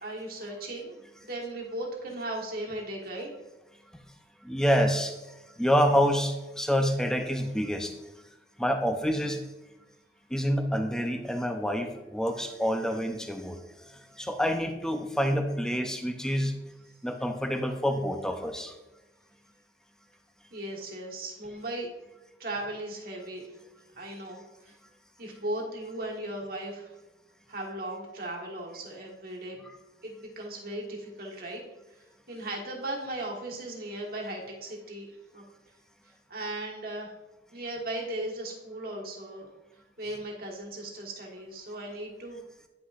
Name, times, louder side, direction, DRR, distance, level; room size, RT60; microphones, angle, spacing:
voice 1, 0.0-3.3 20.5-21.9 22.4-23.5 24.0-24.7 25.2-26.9 27.5-29.6 30.0-31.6 32.3-35.4 36.3-37.1 37.5-39.5 40.0-42.4, right 1 dB, 55° right, -1 dB, 1.5 m, -37 dB
voice 2, 4.4-5.2 5.6-7.9 8.6-9.5 10.3-13.6 14.2-16.6 17.0-18.8 29.6-29.8, equal, 5° left, 5 dB, 0.5 m, -27 dB
9.5 x 5.9 x 2.4 m, 1.1 s
head